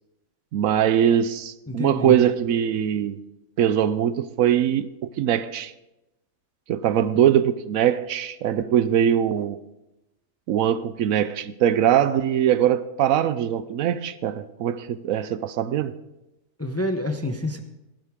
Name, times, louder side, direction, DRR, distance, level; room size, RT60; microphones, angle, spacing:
voice 1, 0.5-3.2 3.6-5.7 6.7-9.6 10.5-16.0, right 10 dB, 75° right, 1.0 m, -22 dB
voice 2, 1.7-2.2 16.6-17.6, left 1 dB, 15° left, 0.6 m, -27 dB
17.5 x 11.0 x 3.6 m
omnidirectional pair, 1.5 m